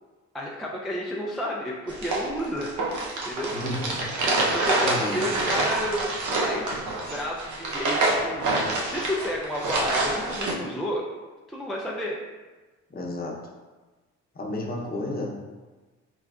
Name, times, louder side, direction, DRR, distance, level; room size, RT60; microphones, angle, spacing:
voice 1, 0.3-2.7 3.2-3.5 4.5-11.0 11.5-12.2, equal, ahead, -3 dB, 0.4 m, -31 dB
sound 1, 1.9-10.5, right 2 dB, 75° right, 0.8 m, -27 dB
voice 2, 3.5-4.1 4.8-5.2 12.9-13.3 14.3-15.5, left 1 dB, 30° left, -2 dB, 0.8 m, -32 dB
3.9 x 3.3 x 2.4 m, 1.3 s
cardioid pair, 90°, 30 cm